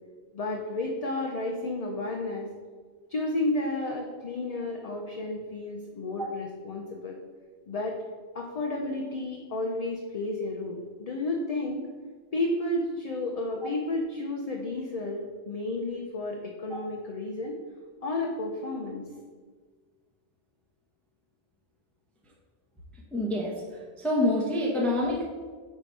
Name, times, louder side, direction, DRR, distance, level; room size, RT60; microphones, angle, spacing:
voice 1, 0.3-2.5 3.1-7.2 7.7-8.0 8.3-11.9 12.3-17.6 18.0-19.1, left 2 dB, 45° left, 0 dB, 0.6 m, -32 dB
voice 2, 23.1-23.6 24.0-25.2, left 1 dB, ahead, -2 dB, 0.7 m, -27 dB
4.8 x 4.4 x 5.3 m, 1.5 s
omnidirectional pair, 1.2 m